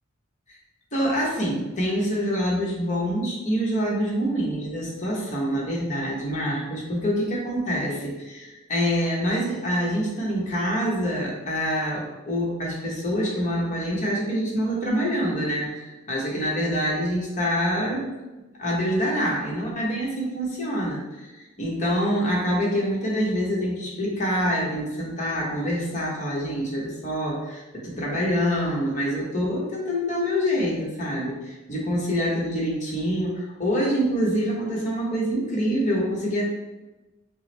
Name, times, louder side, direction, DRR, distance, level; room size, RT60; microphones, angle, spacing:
voice 1, 0.9-18.2 18.6-36.5, equal, 40° left, -4 dB, 1.0 m, -26 dB
5.5 x 2.1 x 3.2 m, 1.1 s
head